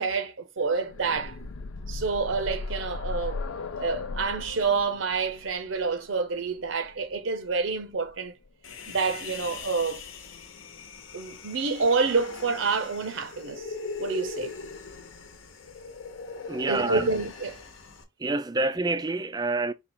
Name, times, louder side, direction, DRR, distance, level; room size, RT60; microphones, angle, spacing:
voice 1, 0.0-1.4 1.9-3.4 3.8-8.3 8.9-10.0 11.1-13.6 14.0-14.5 16.7-17.6, right 4 dB, 70° right, 0.7 m, -28 dB
sound 1, 0.7-8.5 9.6-9.7 10.1-10.2, left 3 dB, 85° left, 0.5 m, -37 dB
Human voice, 8.6-18.0, left 4 dB, 70° left, 0.9 m, -41 dB
voice 2, 16.5-17.1 18.2-19.7, right 2 dB, 20° right, 0.3 m, -27 dB
4.8 x 2.3 x 4.3 m
head